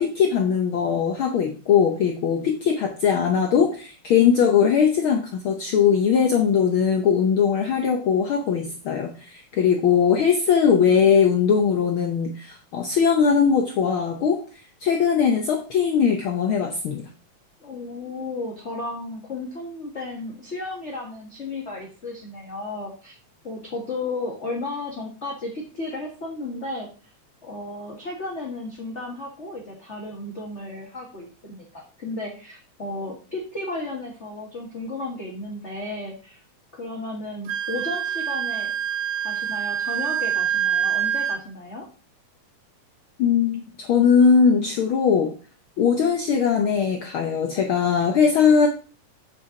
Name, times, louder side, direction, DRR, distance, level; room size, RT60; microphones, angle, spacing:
voice 1, 0.0-14.4 14.8-17.1 43.2-45.3 45.8-48.7, left 7 dB, 80° left, 3 dB, 1.1 m, -20 dB
voice 2, 17.6-23.1 23.4-26.9 27.4-36.4 36.7-38.7 39.2-41.8, left 2 dB, 35° left, -2 dB, 1.3 m, -34 dB
Wind instrument woodwind instrument, 37.4-41.4, right 9 dB, 85° right, 2.6 m, -25 dB
7.7 x 6.6 x 3.8 m, 0.37 s
omnidirectional pair, 3.5 m